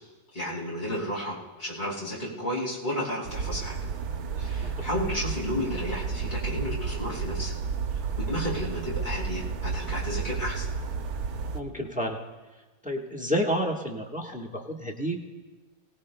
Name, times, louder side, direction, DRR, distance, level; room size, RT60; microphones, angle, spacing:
voice 1, 0.3-3.8 4.4-7.5 8.2-10.7, equal, 40° left, -6 dB, 4.8 m, -32 dB
sound 1, 3.2-11.6, right 5 dB, 70° right, 1.3 m, -32 dB
voice 2, 11.5-12.2 12.8-15.2, equal, 5° right, 0 dB, 1.1 m, -30 dB
25.0 x 19.0 x 2.2 m, 1.2 s
omnidirectional pair, 1.7 m